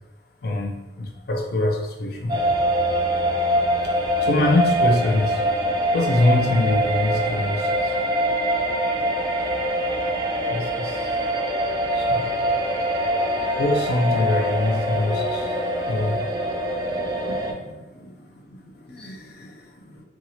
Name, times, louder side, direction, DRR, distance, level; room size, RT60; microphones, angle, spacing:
voice 1, 0.4-2.6 3.8-5.4 5.9-7.9 9.4-9.5 10.5-11.1 11.9-12.6 13.5-16.2 18.9-19.7, left 2 dB, 60° left, 3 dB, 0.4 m, -24 dB
sound 1, 2.3-17.5, right 1 dB, 20° right, 0.3 m, -24 dB
voice 2, 16.8-20.0, equal, 30° left, -3 dB, 0.7 m, -44 dB
2.8 x 2.4 x 2.9 m, 1.1 s
head